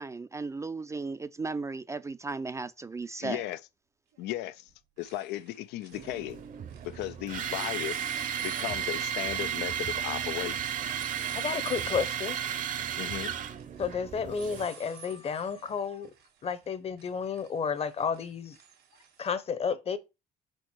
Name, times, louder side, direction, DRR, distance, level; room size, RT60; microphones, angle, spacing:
voice 1, 0.0-3.4, right 3 dB, 15° right, 0.4 m, -35 dB
sound 1, 2.3-2.4 4.1-4.4 4.7-7.1 7.5-19.3, right 9 dB, 90° right, 2.1 m, -54 dB
voice 2, 3.2-3.6 4.2-4.7 5.0-6.4 6.8-8.0 8.4-10.6 13.0-13.3, left 14 dB, 85° left, 0.4 m, -35 dB
sound 2, 5.9-14.7, right 8 dB, 50° right, 0.7 m, -34 dB
voice 3, 11.3-12.4 13.8-16.1 16.4-18.6 19.2-20.0, left 6 dB, 35° left, 0.8 m, -31 dB
5.1 x 4.5 x 4.5 m
cardioid pair, 110°, 17 cm